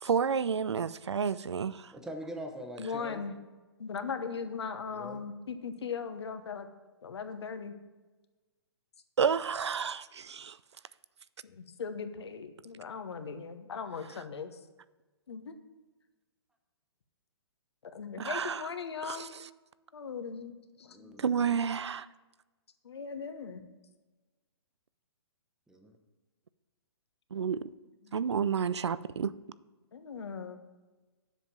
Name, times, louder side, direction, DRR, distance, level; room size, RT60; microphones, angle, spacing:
voice 1, 0.0-1.9 9.2-10.6 18.2-18.6 19.0-19.3 21.2-22.1 27.3-27.7 28.1-29.3, right 6 dB, 85° right, 17 dB, 0.4 m, -30 dB
voice 2, 1.9-3.2 4.9-5.3 20.9-21.5 25.7-25.9, equal, 5° right, 3 dB, 1.0 m, -43 dB
voice 3, 2.8-3.3 3.8-6.7 7.0-7.7 11.4-14.6 15.3-15.5 17.9-19.3 19.9-21.2 22.8-23.6 28.0-28.4 29.9-30.6, left 5 dB, 75° left, 8 dB, 1.0 m, -39 dB
7.4 x 5.4 x 7.3 m, 1.2 s
hypercardioid pair, 135°, 14 cm